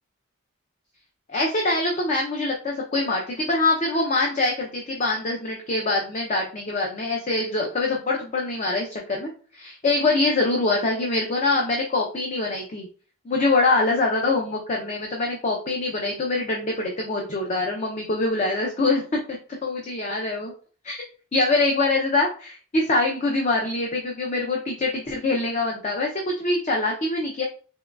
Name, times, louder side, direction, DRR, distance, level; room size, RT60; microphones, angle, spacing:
voice 1, 1.3-12.9 13.3-19.0 19.6-20.5 20.8-27.4, left 2 dB, 35° left, 0 dB, 0.5 m, -24 dB
3.6 x 3.0 x 2.3 m, 0.40 s
head